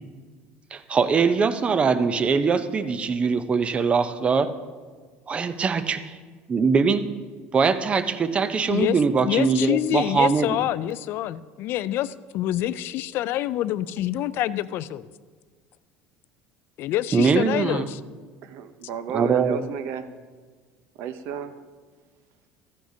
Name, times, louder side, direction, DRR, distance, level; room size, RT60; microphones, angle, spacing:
voice 1, 0.7-4.5 5.3-6.1 6.5-7.1 7.5-10.6 17.1-17.9 19.1-19.6, right 5 dB, 25° right, 12 dB, 0.6 m, -22 dB
voice 2, 8.7-15.1 16.8-18.0, left 13 dB, 55° left, 16 dB, 0.3 m, -26 dB
voice 3, 18.4-20.1 21.0-21.6, right 8 dB, 65° right, 11 dB, 0.7 m, -33 dB
14.0 x 9.8 x 2.7 m, 1.5 s
supercardioid pair, 120°, 4 cm